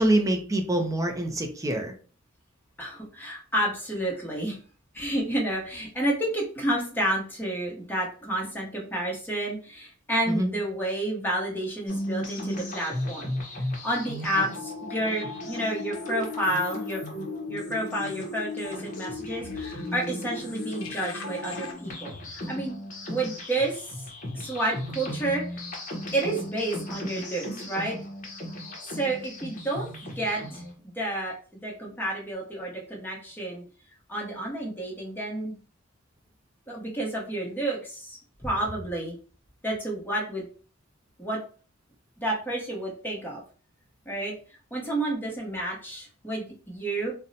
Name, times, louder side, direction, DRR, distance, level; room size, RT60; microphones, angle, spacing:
voice 1, 0.0-1.9 10.3-10.5, right 1 dB, 15° right, 4 dB, 0.5 m, -25 dB
voice 2, 2.8-4.6 4.9-13.3 13.8-17.0 17.5-22.8 23.1-23.8 24.3-25.7 26.1-28.0 28.9-29.9 30.2-30.6 30.9-31.3 31.6-33.6 34.1-35.6 36.7-39.2 39.6-40.4 41.2-41.4 42.2-43.4 44.1-44.3 44.7-47.1, right 1 dB, 10° left, -2 dB, 1.0 m, -30 dB
sound 1, 11.9-30.7, equal, 40° left, 0.8 m, -37 dB
sound 2, 14.3-21.7, left 3 dB, 75° left, 0.5 m, -37 dB
2.7 x 2.1 x 3.9 m, 0.39 s
head